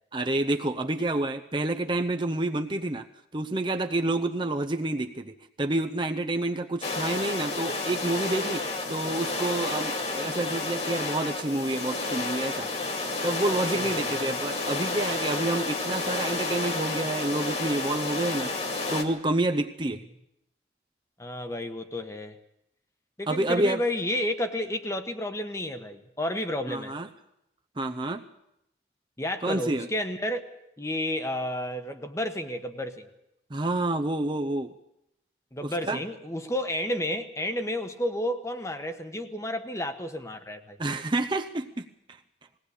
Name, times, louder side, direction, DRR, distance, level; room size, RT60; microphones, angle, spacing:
voice 1, 0.1-3.1 3.3-12.7 13.2-18.5 18.9-20.0 23.3-23.8 26.7-27.1 27.8-28.2 29.4-29.9 33.5-34.7 35.6-36.0 40.8-42.2, right 2 dB, 25° right, 6 dB, 0.7 m, -28 dB
sound 1, 6.8-19.0, left 3 dB, 35° left, 2.2 m, -31 dB
voice 2, 13.8-14.1 21.2-22.4 23.2-26.9 29.2-30.4 30.8-33.1 35.5-40.8, left 1 dB, 15° left, 8 dB, 1.2 m, -31 dB
20.5 x 18.0 x 8.3 m, 0.82 s
head